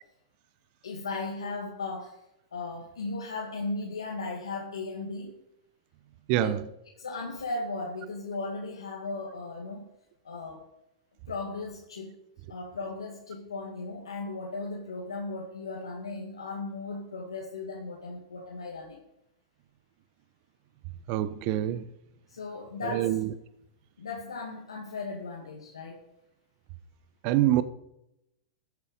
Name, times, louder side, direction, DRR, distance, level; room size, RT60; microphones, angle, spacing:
voice 1, 0.8-2.2 2.5-5.3 6.4-6.7 7.0-9.8 10.2-10.6 11.3-12.2 12.5-19.0 22.3-23.2 24.0-26.0, left 3 dB, 90° left, 2.2 m, -36 dB
voice 2, 6.3-6.6 21.1-21.8 22.8-23.3 27.2-27.6, right 13 dB, 50° right, 0.9 m, -25 dB
14.0 x 8.3 x 5.2 m
hypercardioid pair, 115°, 3 cm